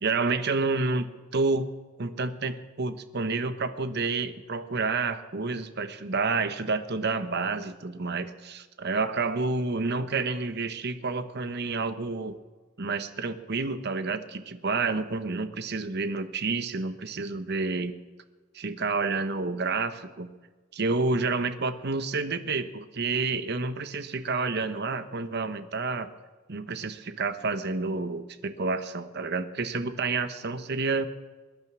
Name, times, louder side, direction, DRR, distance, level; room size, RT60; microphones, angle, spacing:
voice 1, 0.0-1.7 2.0-12.4 12.8-18.0 18.5-20.3 20.7-26.1 26.5-31.1, right 3 dB, 55° right, 11 dB, 1.0 m, -29 dB
21.5 x 10.5 x 6.1 m, 1.3 s
head